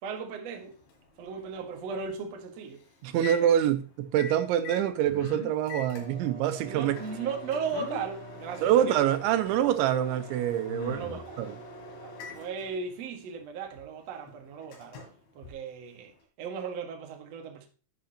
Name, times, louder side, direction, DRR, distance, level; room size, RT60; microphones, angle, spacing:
voice 1, 0.0-0.7 1.2-2.8 3.2-3.4 6.7-8.9 10.5-10.6 10.9-11.4 12.0-15.0 15.3-16.1 16.4-17.7, right 5 dB, 65° right, 1.7 m, -36 dB
Microwave oven, 0.6-16.2, left 2 dB, 90° left, 4.9 m, -46 dB
voice 2, 3.0-7.0 8.6-11.6, right 11 dB, 85° right, 3.3 m, -26 dB
sound 1, 5.0-5.5 7.7-8.0 9.5-9.6 10.7-11.3, left 3 dB, 65° left, 5.3 m, -40 dB
11.5 x 9.1 x 2.8 m
omnidirectional pair, 5.2 m